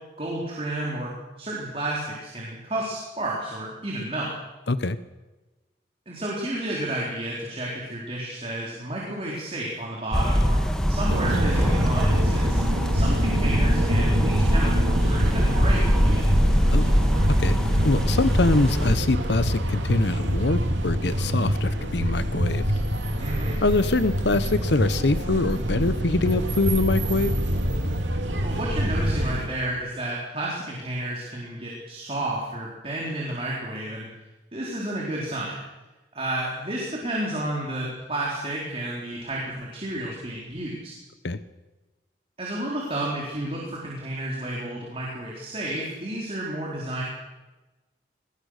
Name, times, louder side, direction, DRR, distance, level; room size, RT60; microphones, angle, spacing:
voice 1, 0.2-1.1 1.4-4.3 6.1-10.6 10.9-12.6 12.9-16.3 23.2-23.6 28.4-34.1 34.5-35.6 36.1-40.9 42.4-47.0, right 1 dB, 30° right, -4 dB, 4.2 m, -31 dB
sound 1, 10.1-19.0, equal, 5° left, 1.7 m, -22 dB
sound 2, 11.1-29.5, equal, 85° right, 2.8 m, -26 dB
voice 2, 17.8-22.6 23.6-27.3 41.2-41.4, left 2 dB, 70° left, 13 dB, 0.9 m, -24 dB
23.0 x 20.5 x 6.7 m, 1.1 s
head